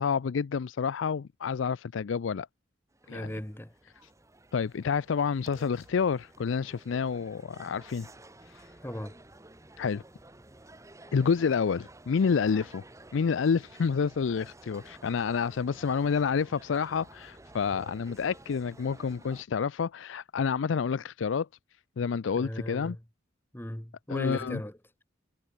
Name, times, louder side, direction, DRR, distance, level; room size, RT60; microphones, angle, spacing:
voice 1, 0.0-2.5 3.1-3.3 4.5-8.1 9.8-10.0 11.1-12.8 13.1-21.5 22.0-23.0 24.1-24.6, left 6 dB, 75° left, 0.4 m, -29 dB
sound 1, 2.9-19.4, right 2 dB, 15° right, 1.5 m, -52 dB
voice 2, 3.1-3.7 8.8-9.2 22.3-23.0 23.5-24.8, equal, 10° left, 1.4 m, -37 dB
head